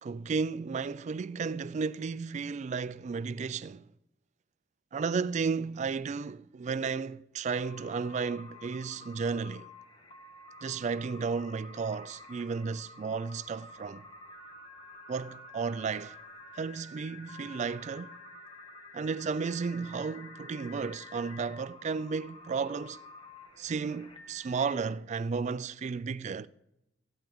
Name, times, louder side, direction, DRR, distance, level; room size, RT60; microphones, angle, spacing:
voice 1, 0.0-3.9 4.9-9.7 10.6-14.1 15.1-16.2 16.5-18.2 18.9-23.0 23.6-26.5, right 5 dB, 35° right, 0.3 m, -33 dB
sound 1, 7.5-24.9, left 2 dB, 25° left, 1.4 m, -50 dB
18.5 x 9.0 x 3.6 m
head